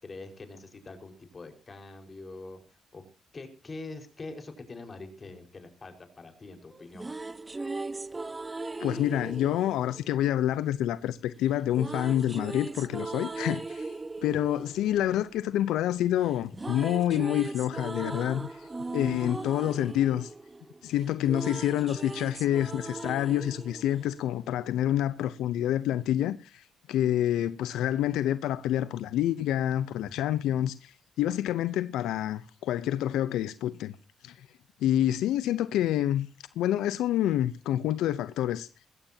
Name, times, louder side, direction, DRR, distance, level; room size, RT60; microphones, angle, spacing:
voice 1, 0.0-3.0 3.3-7.1, left 3 dB, 30° left, 4.8 m, -44 dB
sound 1, 6.7-10.9 11.7-16.0 16.2-24.7, right 3 dB, 20° right, 0.8 m, -39 dB
voice 2, 8.8-13.9 14.2-20.3 20.8-33.9 34.2-34.5 34.8-36.3 36.6-38.7, left 12 dB, 85° left, 0.7 m, -28 dB
20.5 x 16.0 x 2.8 m
cardioid pair, 90°, 0 cm